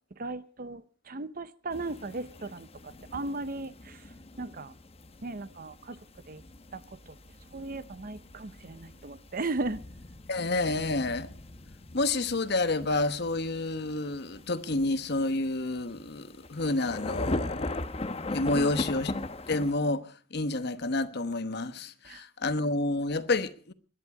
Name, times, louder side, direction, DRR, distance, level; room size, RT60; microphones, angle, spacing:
voice 1, 0.2-0.8 1.1-4.0 4.4-4.7 5.2-6.0 6.3-6.4 6.7-6.8 7.5-9.8 18.5-18.7 22.1-22.2, right 2 dB, 45° right, 0.7 m, -36 dB
sound 1, 1.7-19.7, left 2 dB, 30° left, 0.9 m, -39 dB
voice 2, 10.3-11.3 11.9-17.8 18.3-19.1 19.5-23.7, left 2 dB, 55° left, 1.1 m, -29 dB
21.5 x 11.0 x 4.8 m
head